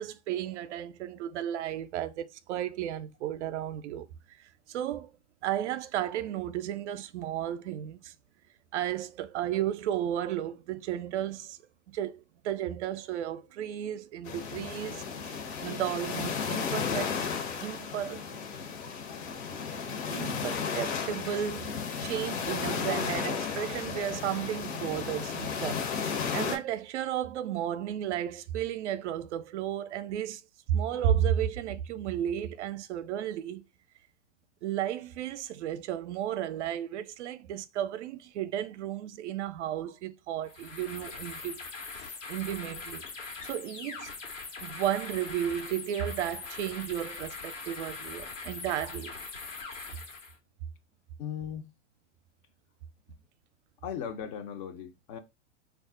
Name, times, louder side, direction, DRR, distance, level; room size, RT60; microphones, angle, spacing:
voice 1, 0.0-4.1 4.4-5.1 5.4-8.1 8.7-11.6 11.9-15.3 15.6-17.1 17.6-18.2 20.1-30.4 30.7-33.6 34.6-41.6 42.3-43.0 43.4-44.1 44.6-49.1, right 11 dB, 70° right, 0.5 m, -33 dB
sound 1, 14.3-26.6, left 6 dB, 65° left, 0.9 m, -34 dB
sound 2, 40.4-50.4, left 4 dB, 85° left, 1.1 m, -42 dB
voice 2, 51.2-51.7 53.8-55.2, left 8 dB, 35° left, 0.4 m, -37 dB
2.4 x 2.0 x 3.6 m
hypercardioid pair, 110°, 36 cm